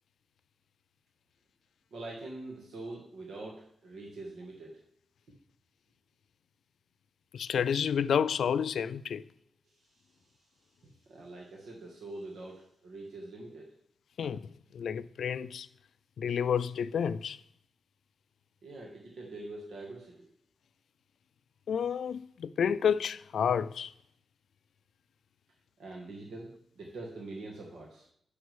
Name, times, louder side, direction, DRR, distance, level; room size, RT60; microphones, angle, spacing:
voice 1, 1.9-4.8 9.6-10.3 10.8-13.8 18.6-20.3 25.8-28.1, right 2 dB, 90° right, 1.6 m, -44 dB
voice 2, 7.3-9.2 14.2-15.7 16.2-17.4 21.7-23.9, left 7 dB, 85° left, 0.3 m, -30 dB
6.2 x 6.1 x 7.2 m
wide cardioid pair, 105°, 0 cm